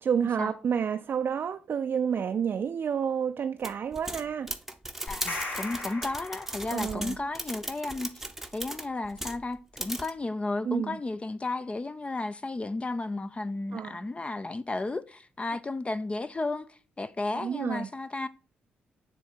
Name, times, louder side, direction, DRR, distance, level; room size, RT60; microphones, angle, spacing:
voice 1, 0.0-4.5 6.7-7.2 10.7-11.0 13.7-14.0 17.4-17.9, right 7 dB, 50° right, 0.3 m, -29 dB
sound 1, 3.6-9.4 9.8-10.1, right 1 dB, 5° right, 0.7 m, -37 dB
sound 2, 5.1-7.0, left 2 dB, 45° left, 1.6 m, -38 dB
voice 2, 5.1-8.1 8.5-18.3, left 2 dB, 25° left, 0.4 m, -33 dB
6.5 x 3.7 x 4.4 m
hypercardioid pair, 40°, 5 cm